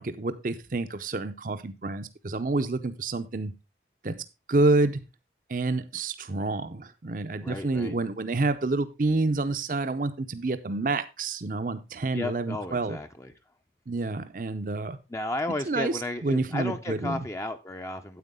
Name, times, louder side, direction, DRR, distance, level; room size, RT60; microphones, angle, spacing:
voice 1, 0.0-3.5 4.0-4.2 4.5-5.0 5.5-13.0 13.9-15.0 15.7-15.9 16.2-17.2, right 2 dB, 50° right, 0.6 m, -28 dB
voice 2, 7.4-7.9 12.1-13.3 15.1-18.2, left 1 dB, 15° left, 0.6 m, -33 dB
9.4 x 8.3 x 3.6 m
head